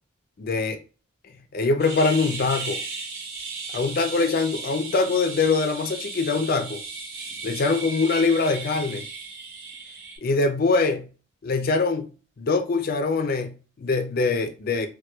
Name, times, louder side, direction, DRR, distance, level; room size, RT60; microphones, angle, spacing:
voice 1, 0.4-0.8 1.5-2.8 3.7-6.8 7.4-9.1 10.2-11.1 11.4-12.1 12.4-14.9, left 4 dB, 45° left, 0.4 m, -23 dB
sound 1, 1.8-10.2, right 4 dB, 50° right, 1.0 m, -36 dB
4.3 x 2.2 x 2.2 m
head